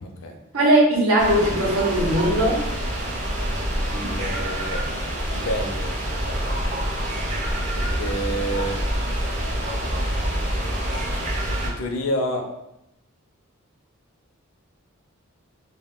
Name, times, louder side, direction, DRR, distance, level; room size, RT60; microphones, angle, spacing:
voice 1, 0.0-0.4 3.8-4.9 5.3-5.9 7.8-8.8 11.6-12.5, equal, 70° left, 3 dB, 0.5 m, -29 dB
voice 2, 0.5-2.6, right 1 dB, 80° right, -3 dB, 0.8 m, -19 dB
sound 1, 1.2-11.7, equal, 35° right, 0.6 m, -26 dB
2.2 x 2.2 x 3.6 m, 0.85 s
head